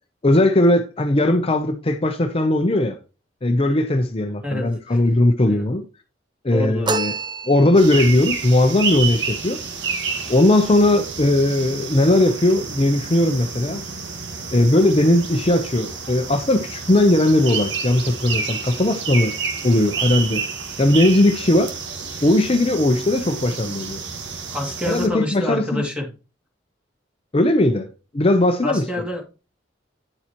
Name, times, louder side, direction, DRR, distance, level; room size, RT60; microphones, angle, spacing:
voice 1, 0.2-3.0 3.4-5.9 6.4-7.1 7.5-9.6 10.3-13.8 14.5-19.3 19.6-20.4 20.8-21.7 22.2-24.0 24.8-25.8 27.3-27.9 28.1-28.8, left 1 dB, 30° left, 0.7 m, -18 dB
voice 2, 4.4-5.0 5.4-5.7 6.5-6.9 24.5-26.1 28.6-29.4, left 1 dB, 5° right, 2.3 m, -27 dB
sound 1, 6.9-8.1, right 2 dB, 25° right, 0.7 m, -27 dB
sound 2, 7.7-25.1, right 5 dB, 75° right, 1.7 m, -30 dB
9.8 x 7.1 x 2.9 m
head